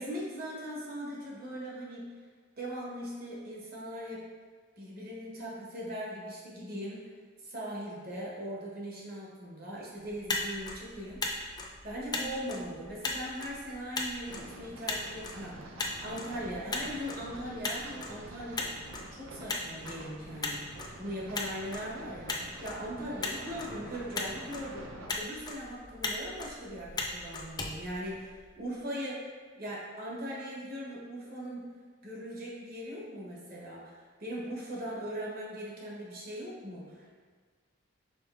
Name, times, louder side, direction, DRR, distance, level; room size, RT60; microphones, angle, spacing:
voice 1, 0.0-2.0 2.6-4.3 4.8-7.1 7.4-18.6 19.1-20.6 21.0-22.3 22.6-24.9 25.1-29.2 29.5-31.7 32.0-37.1, equal, 50° right, -4 dB, 1.1 m, -40 dB
Motor vehicle (road), 10.0-28.6, left 3 dB, 20° left, 0.4 m, -39 dB
sound 1, 14.2-25.1, right 2 dB, 80° right, 0.7 m, -48 dB
5.1 x 3.9 x 2.5 m, 1.5 s
head